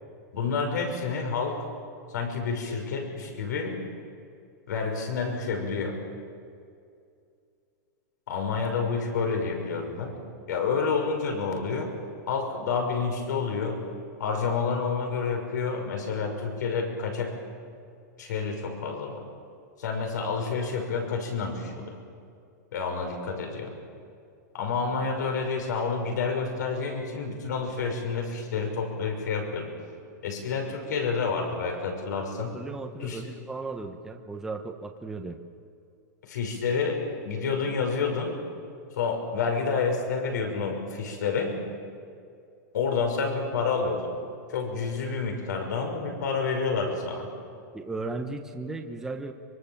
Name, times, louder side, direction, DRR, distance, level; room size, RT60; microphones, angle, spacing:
voice 1, 0.3-1.6 2.1-3.8 4.7-5.9 8.3-10.1 10.5-11.9 12.3-13.8 14.2-17.3 18.2-19.2 19.8-22.0 22.7-23.7 24.5-29.7 30.2-32.5 33.0-33.2 36.2-38.3 39.0-41.5 42.7-44.1 44.5-47.3, left 5 dB, 80° left, 3 dB, 6.1 m, -29 dB
voice 2, 32.4-35.4 47.7-49.3, right 3 dB, 5° right, 3 dB, 1.0 m, -36 dB
24.5 x 24.0 x 7.4 m, 2.4 s
supercardioid pair, 170°, 10 cm